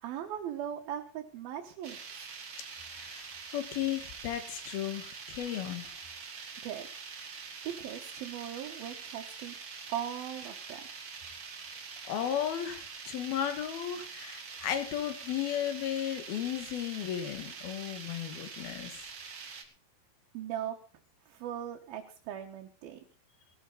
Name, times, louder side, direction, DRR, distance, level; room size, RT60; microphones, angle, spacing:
voice 1, 0.0-2.2 6.6-6.9 7.6-9.6 9.9-10.9 20.3-20.8 21.3-23.0, right 10 dB, 80° right, 2 dB, 3.2 m, -39 dB
sound 1, 1.8-19.6, right 5 dB, 40° right, 2.3 m, -45 dB
voice 2, 2.9-6.0 12.1-19.0, left 10 dB, 85° left, 9 dB, 3.7 m, -35 dB
18.5 x 13.5 x 4.0 m, 0.37 s
omnidirectional pair, 4.2 m